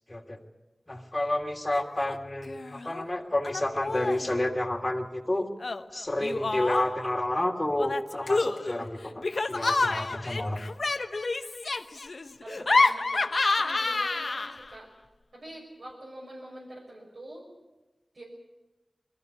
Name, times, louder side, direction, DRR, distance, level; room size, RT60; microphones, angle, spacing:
voice 1, 0.9-5.5 5.9-10.6, left 1 dB, 30° left, 1 dB, 2.8 m, -30 dB
Laughter, 1.7-2.2 2.4-3.0 3.4-4.3 5.6-7.1 7.8-14.7, left 3 dB, 65° left, 0.9 m, -29 dB
voice 2, 12.4-14.9 15.3-17.5 18.1-18.2, right 1 dB, 70° right, -5 dB, 6.1 m, -45 dB
21.5 x 14.5 x 9.6 m, 1.1 s
wide cardioid pair, 50°, 0 cm